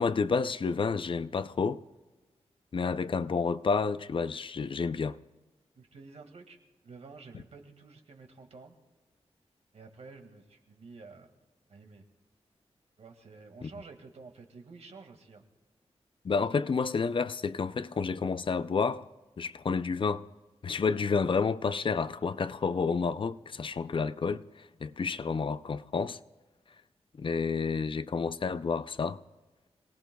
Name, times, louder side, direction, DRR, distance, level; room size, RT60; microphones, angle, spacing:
voice 1, 0.0-1.8 2.7-5.2 13.6-13.7 16.2-19.1 19.4-20.3 20.6-26.2 27.2-29.2, left 5 dB, 50° left, 0.5 m, -30 dB
voice 2, 5.8-6.6 6.8-8.8 9.7-11.3 11.7-12.0 13.0-15.4, right 4 dB, 75° right, 1.9 m, -50 dB
27.0 x 19.0 x 2.3 m
wide cardioid pair, 120°, 11 cm